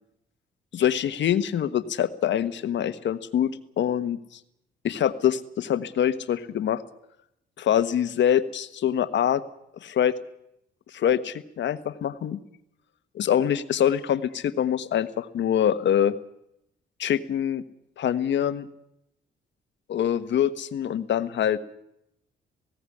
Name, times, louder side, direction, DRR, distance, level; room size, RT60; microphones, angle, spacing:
voice 1, 0.7-3.5 3.8-4.2 4.8-6.8 7.6-9.4 9.8-10.1 10.9-12.4 13.2-16.1 17.0-17.6 18.0-18.7 19.9-21.6, left 9 dB, 65° left, 12 dB, 1.4 m, -24 dB
18.0 x 17.0 x 9.9 m, 0.80 s
cardioid pair, 90°, 20 cm